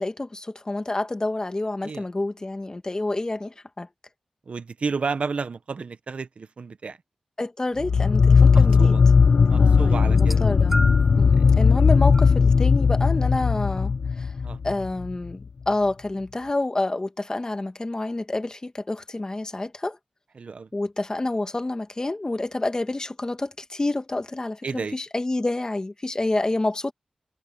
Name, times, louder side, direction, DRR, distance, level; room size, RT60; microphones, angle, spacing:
voice 1, 0.0-3.9 7.4-8.9 9.6-10.8 11.2-14.3 14.6-20.0 20.7-26.9, left 2 dB, 35° left, 2.0 m, -28 dB
voice 2, 4.5-7.0 8.5-9.0 9.5-10.4 11.4-11.5 14.4-14.6 20.4-20.7 24.6-25.0, right 4 dB, 65° right, 1.1 m, -31 dB
sound 1, 7.8-15.1, left 5 dB, 70° left, 0.6 m, -18 dB
sound 2, 10.1-11.2 12.1-12.3 13.4-13.5, equal, 5° right, 3.8 m, -32 dB
cardioid pair, 50°, 2 cm